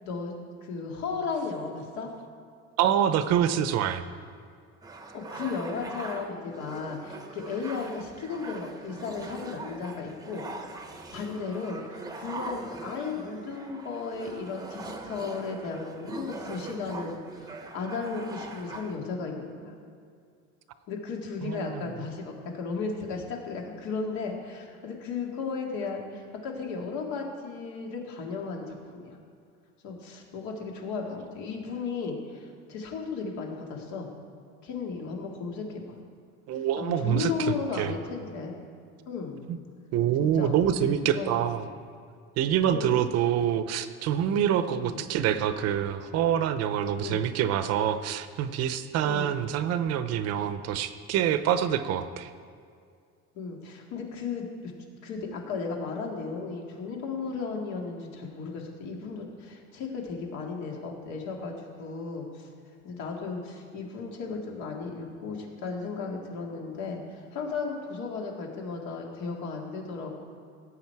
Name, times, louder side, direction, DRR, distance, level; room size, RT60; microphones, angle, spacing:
voice 1, 0.0-2.1 5.1-10.5 11.1-19.7 20.9-29.2 29.8-34.1 34.6-36.0 36.8-38.6 39.1-39.4 40.2-41.5 42.7-43.0 44.7-45.1 47.0-47.3 49.0-49.4 53.3-54.7 55.0-62.5 62.8-70.2, left 4 dB, 70° left, 1 dB, 2.3 m, -35 dB
voice 2, 2.8-4.0 21.4-21.9 36.5-37.9 39.5-39.6 39.9-41.6 42.4-52.3, right 9 dB, 55° right, 11 dB, 0.7 m, -26 dB
sound 1, 4.8-19.0, right 3 dB, 10° right, 0.8 m, -42 dB
17.0 x 8.3 x 4.7 m, 2.3 s
cardioid pair, 155°, 29 cm